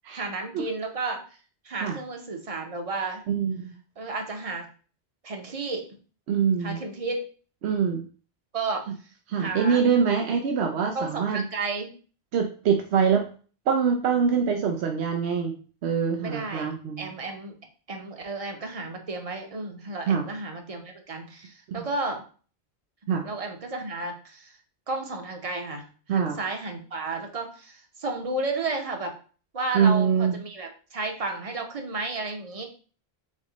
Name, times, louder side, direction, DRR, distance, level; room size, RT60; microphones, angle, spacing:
voice 1, 0.1-1.2 1.6-3.2 4.0-4.7 5.2-5.9 6.6-7.3 8.5-8.9 9.4-9.8 10.9-11.9 16.2-16.7 17.0-17.5 17.9-22.2 23.2-24.6 24.9-29.1 29.5-32.7, right 3 dB, 35° right, 4 dB, 0.8 m, -32 dB
voice 2, 3.3-3.7 6.3-6.8 7.6-8.0 9.3-11.4 12.3-13.2 13.7-17.1 20.1-20.3 21.7-21.8 23.1-23.2 26.1-26.4 29.7-30.4, right 6 dB, 80° right, 3 dB, 0.9 m, -24 dB
4.3 x 3.0 x 3.9 m, 0.39 s
omnidirectional pair, 1.1 m